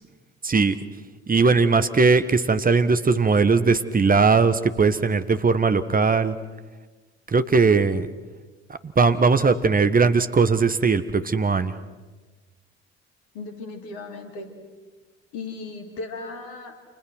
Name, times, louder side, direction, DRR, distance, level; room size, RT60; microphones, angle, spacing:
voice 1, 0.4-0.8 1.3-6.3 7.3-8.1 8.8-11.7, right 4 dB, 25° right, 11 dB, 1.4 m, -19 dB
voice 2, 13.3-14.5 15.3-16.7, left 3 dB, 65° left, 4 dB, 3.4 m, -36 dB
29.5 x 28.5 x 6.3 m, 1.3 s
figure-of-eight pair, 45°, 34 cm